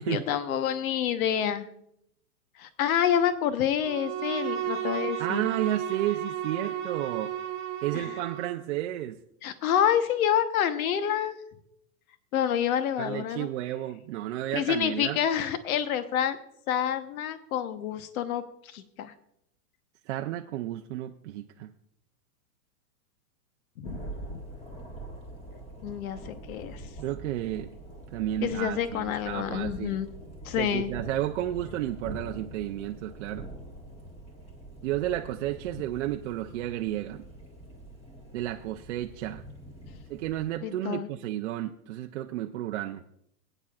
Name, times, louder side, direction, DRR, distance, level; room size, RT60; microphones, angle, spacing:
voice 1, 0.1-1.6 2.6-5.5 7.9-8.1 9.4-11.4 12.3-13.5 14.5-16.4 16.7-18.4 18.7-19.1 23.8-24.4 25.8-26.8 28.4-30.1 30.4-30.9 40.6-41.1, left 9 dB, 65° left, 10 dB, 1.1 m, -28 dB
Bowed string instrument, 3.8-8.6, right 10 dB, 25° right, 1.3 m, -33 dB
voice 2, 5.2-7.3 7.8-9.2 13.0-15.2 20.1-21.7 27.0-27.7 28.1-30.0 30.6-33.5 34.8-37.2 38.3-39.4 40.1-43.0, right 13 dB, 55° right, 4 dB, 0.6 m, -32 dB
Thunder, 23.8-40.5, right 1 dB, 15° left, 1.6 m, -44 dB
19.5 x 9.0 x 2.4 m, 0.75 s
supercardioid pair, 155°, 45 cm